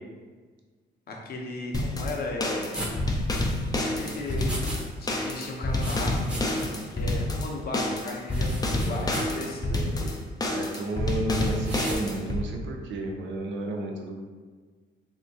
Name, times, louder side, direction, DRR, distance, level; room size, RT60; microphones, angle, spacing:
voice 1, 1.1-2.7 3.8-4.5 5.0-6.6 6.9-9.7, left 2 dB, 50° left, -1 dB, 0.7 m, -35 dB
sound 1, 1.7-12.4, left 1 dB, 20° left, 0.4 m, -28 dB
sound 2, 2.7-4.8 5.1-6.9 7.2-7.3 8.3-9.4 9.9-10.2 11.6-12.0, equal, 5° right, 0.8 m, -37 dB
voice 2, 8.7-9.4 9.7-10.0 10.5-14.2, right 2 dB, 70° right, 1 dB, 0.5 m, -33 dB
3.2 x 2.8 x 2.7 m, 1.5 s
cardioid pair, 90°, 20 cm